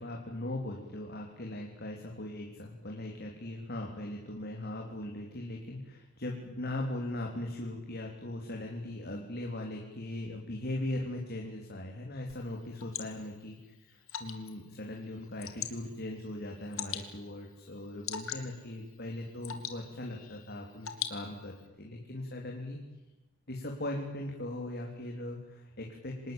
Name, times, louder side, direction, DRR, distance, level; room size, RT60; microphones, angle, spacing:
voice 1, 0.0-13.6 14.2-22.8 23.5-26.3, left 1 dB, 50° left, 0 dB, 3.7 m, -39 dB
Water / Drip, 12.3-21.7, left 9 dB, 75° left, 2.8 m, -44 dB
27.0 x 19.5 x 9.1 m, 1.1 s
head